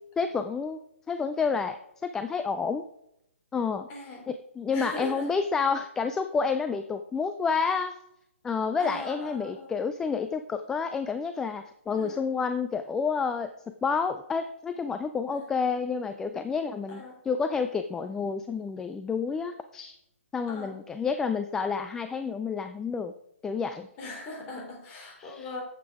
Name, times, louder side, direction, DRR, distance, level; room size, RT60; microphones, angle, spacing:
voice 1, 0.2-0.8 1.1-1.8 2.0-2.8 3.5-3.9 4.3-8.0 8.4-13.5 13.8-17.0 17.3-19.9 20.3-23.1 23.4-23.9 25.2-25.5, left 5 dB, 5° left, 9 dB, 0.3 m, -29 dB
voice 2, 3.9-4.3 4.7-5.3 8.8-9.7 12.0-12.3 15.3-15.5 16.9-17.1 20.5-20.8 24.0-25.6, left 1 dB, 25° left, 0 dB, 3.3 m, -39 dB
9.2 x 8.0 x 4.8 m, 0.78 s
figure-of-eight pair, 135°, 7 cm